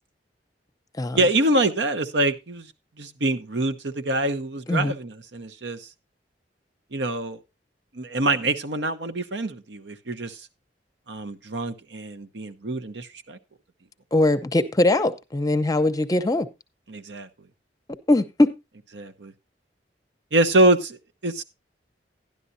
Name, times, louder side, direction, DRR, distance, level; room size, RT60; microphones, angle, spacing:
voice 1, 1.2-2.7 3.0-5.9 6.9-7.4 7.9-10.5 11.1-13.4 16.9-17.3 18.9-19.3 20.3-21.0 21.2-21.4, right 2 dB, 75° right, 0.9 m, -25 dB
voice 2, 14.1-16.5 18.1-18.5, left 2 dB, 20° left, 0.7 m, -21 dB
12.5 x 10.5 x 2.7 m
head